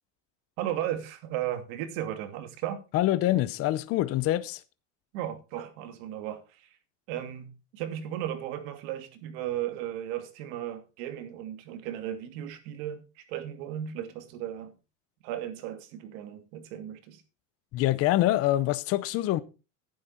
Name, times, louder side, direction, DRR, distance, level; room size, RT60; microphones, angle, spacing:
voice 1, 0.6-2.8 5.1-6.8 7.1-14.7 15.2-17.2, right 11 dB, 75° right, 2.7 m, -35 dB
voice 2, 2.9-4.6 17.7-19.4, left 15 dB, 35° left, 0.6 m, -25 dB
11.5 x 10.5 x 4.3 m
cardioid pair, 165°, 40 cm